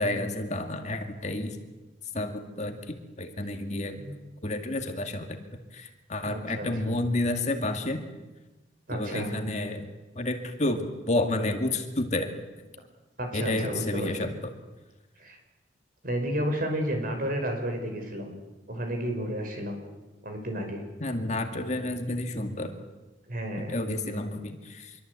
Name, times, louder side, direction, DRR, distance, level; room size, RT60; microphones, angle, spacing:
voice 1, 0.0-1.6 2.1-4.0 4.4-5.4 5.7-8.0 8.9-9.9 10.2-12.3 13.3-14.3 21.0-22.8 23.6-25.0, left 2 dB, 40° left, 5 dB, 2.3 m, -30 dB
voice 2, 6.2-7.0 8.9-9.4 13.2-14.3 15.2-15.4 16.0-18.4 18.7-19.8 20.2-20.8 23.3-23.8, right 1 dB, 50° right, 4 dB, 5.7 m, -32 dB
25.5 x 23.0 x 8.4 m, 1.1 s
head